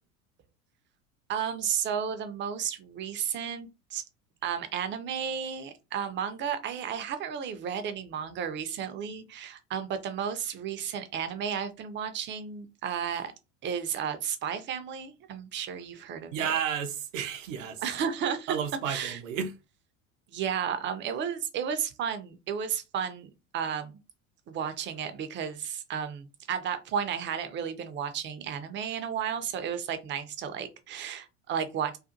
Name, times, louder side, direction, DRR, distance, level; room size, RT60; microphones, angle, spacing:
voice 1, 1.3-4.0 4.4-13.3 13.6-16.4 17.8-18.6 18.9-19.2 20.3-23.9 24.5-32.0, right 8 dB, 30° right, 0.5 m, -33 dB
voice 2, 16.3-17.8 18.5-19.5, right 8 dB, 70° right, 0.6 m, -32 dB
2.4 x 2.4 x 2.5 m
hypercardioid pair, 75°, 39 cm